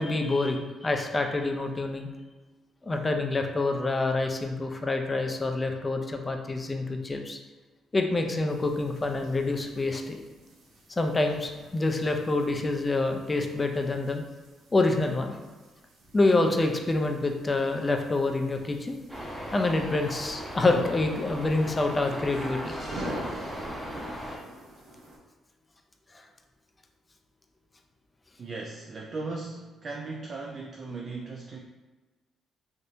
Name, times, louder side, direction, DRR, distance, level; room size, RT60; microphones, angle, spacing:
voice 1, 0.0-2.1 2.8-7.4 7.9-10.2 10.9-14.2 14.7-15.4 16.1-19.0 19.5-22.7, left 2 dB, 25° left, 4 dB, 0.4 m, -27 dB
sound 1, 8.5-25.2, equal, 85° right, 0.7 m, -46 dB
sound 2, 19.1-24.4, equal, 5° right, 0.8 m, -38 dB
voice 2, 28.4-31.6, right 3 dB, 45° right, 0 dB, 0.3 m, -37 dB
3.4 x 2.6 x 2.6 m, 1.2 s
cardioid pair, 90°, 0 cm